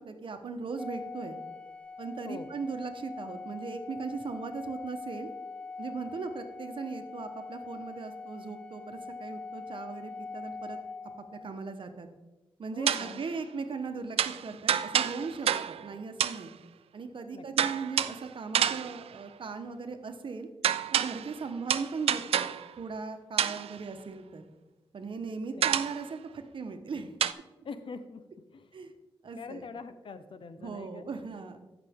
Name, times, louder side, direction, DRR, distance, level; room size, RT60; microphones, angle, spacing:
voice 1, 0.0-1.4 2.0-5.3 5.8-10.8 11.3-12.1 12.6-16.5 16.9-20.5 20.9-22.5 22.8-24.5 24.9-27.2 28.7-28.9 29.2-29.7 30.6-31.6, right 4 dB, 60° right, 7 dB, 1.1 m, -38 dB
Organ, 0.8-11.6, left 4 dB, 10° left, 0.5 m, -43 dB
voice 2, 12.7-13.2 17.3-17.5 25.6-25.7 27.6-28.3 28.5-28.7 29.4-31.1, left 4 dB, 60° left, 11 dB, 0.7 m, -43 dB
sound 1, 12.9-13.2 14.2-15.9 16.2-16.5 17.6-18.3 18.5-19.1 20.6-21.4 21.7-22.7 23.4-23.8 25.6-26.1 27.2-27.3, right 9 dB, 85° right, 0.4 m, -28 dB
14.5 x 6.0 x 3.6 m, 1.1 s
wide cardioid pair, 90°, 10 cm